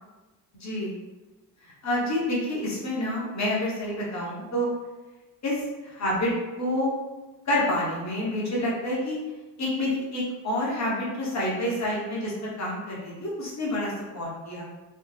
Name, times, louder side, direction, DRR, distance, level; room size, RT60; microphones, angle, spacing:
voice 1, 0.6-0.9 1.6-4.7 5.4-6.9 7.5-9.2 9.6-14.6, left 1 dB, 45° left, -5 dB, 1.1 m, -28 dB
3.2 x 2.0 x 3.3 m, 1.2 s
cardioid pair, 120°, 40 cm